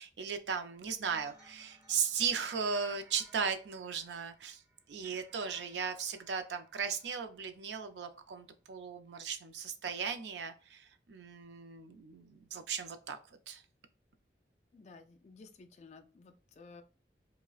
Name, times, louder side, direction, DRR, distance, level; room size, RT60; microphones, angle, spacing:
voice 1, 0.0-4.6 4.9-13.6, right 6 dB, 80° right, 8 dB, 0.5 m, -37 dB
sound 1, 1.0-7.1, right 2 dB, 10° right, 1.2 m, -59 dB
voice 2, 14.7-16.8, left 4 dB, 40° left, 6 dB, 0.3 m, -55 dB
4.8 x 2.1 x 2.4 m, 0.36 s
head